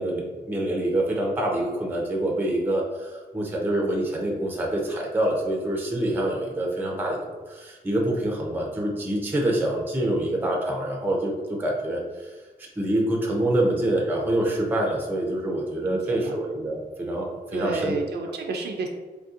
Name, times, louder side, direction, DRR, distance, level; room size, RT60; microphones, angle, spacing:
voice 1, 0.0-12.3 12.8-18.2, right 1 dB, 10° right, -1 dB, 0.5 m, -26 dB
voice 2, 15.9-16.4 17.5-18.9, right 3 dB, 80° right, 3 dB, 0.4 m, -31 dB
3.4 x 2.6 x 2.4 m, 1.3 s
wide cardioid pair, 120°, 17 cm